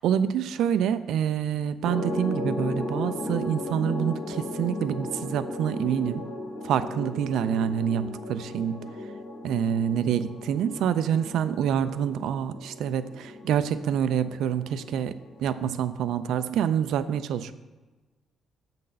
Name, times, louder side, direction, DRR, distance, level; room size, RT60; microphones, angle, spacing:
voice 1, 0.0-6.2 6.6-8.9 9.4-17.5, right 9 dB, 80° right, 12 dB, 0.3 m, -27 dB
sound 1, 1.8-15.8, left 2 dB, 55° left, 1.4 m, -36 dB
7.4 x 4.0 x 5.5 m, 1.2 s
cardioid pair, 90°, 0 cm